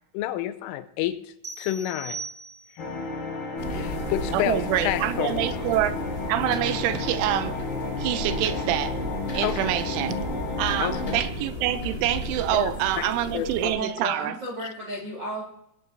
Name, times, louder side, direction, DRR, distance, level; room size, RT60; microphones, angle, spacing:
voice 1, 0.1-2.2 3.7-5.4 9.4-9.7 10.8-11.0 12.5-13.5, left 13 dB, 90° left, 3.2 m, -30 dB
sound 1, 1.4-3.0, right 4 dB, 10° right, 1.8 m, -38 dB
sound 2, 2.8-11.2, left 3 dB, 55° left, 4.8 m, -32 dB
sound 3, 3.6-13.7, equal, 35° left, 1.8 m, -34 dB
voice 2, 4.3-5.9 6.3-7.6 8.0-9.0 9.3-10.2 10.6-14.4, right 12 dB, 80° right, 3.0 m, -26 dB
voice 3, 13.6-15.4, equal, 55° right, 1.2 m, -33 dB
20.0 x 10.0 x 2.7 m
omnidirectional pair, 5.7 m